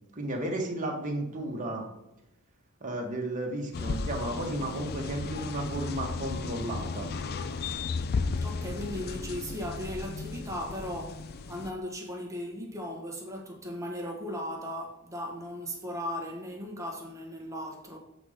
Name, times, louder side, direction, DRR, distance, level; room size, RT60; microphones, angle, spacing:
voice 1, 0.1-1.9 2.8-7.1, right 1 dB, 35° right, 1.4 m, -33 dB
sound 1, 3.7-11.7, left 4 dB, 45° left, 0.4 m, -34 dB
voice 2, 8.4-18.0, equal, 15° right, 1.4 m, -37 dB
8.2 x 4.1 x 5.0 m
head